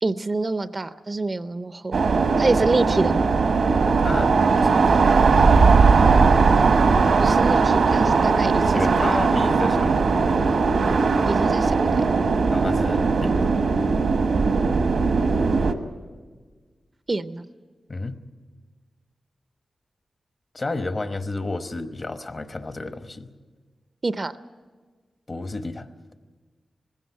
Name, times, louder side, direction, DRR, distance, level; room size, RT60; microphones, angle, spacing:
voice 1, 0.0-1.9 2.4-3.3 7.2-9.0 11.3-11.8 17.1-17.5 24.0-24.3, right 3 dB, 35° right, 12 dB, 0.6 m, -26 dB
sound 1, 1.9-15.7, right 4 dB, 80° right, 1.3 m, -19 dB
voice 2, 4.0-5.0 8.7-10.0 12.5-13.5 17.9-18.3 20.5-23.3 25.3-25.9, left 2 dB, 35° left, 9 dB, 1.0 m, -31 dB
19.5 x 16.0 x 9.3 m, 1.4 s
wide cardioid pair, 130°, 0 cm